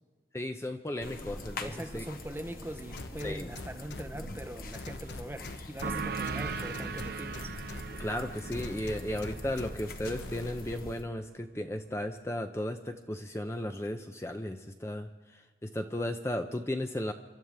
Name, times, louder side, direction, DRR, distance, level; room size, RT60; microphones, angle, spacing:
voice 1, 0.3-2.0 3.2-3.5 8.0-17.1, left 1 dB, 15° left, 0.6 m, -35 dB
sound 1, 1.0-11.0, left 1 dB, 50° left, 1.2 m, -44 dB
voice 2, 1.6-7.5, right 1 dB, 15° right, 0.7 m, -42 dB
sound 2, 3.0-4.0 4.7-5.9 6.3-7.8 8.5-9.7 10.1-10.5, left 3 dB, 85° left, 0.9 m, -43 dB
sound 3, 5.8-11.0, right 5 dB, 55° right, 0.5 m, -39 dB
27.5 x 12.5 x 3.5 m
head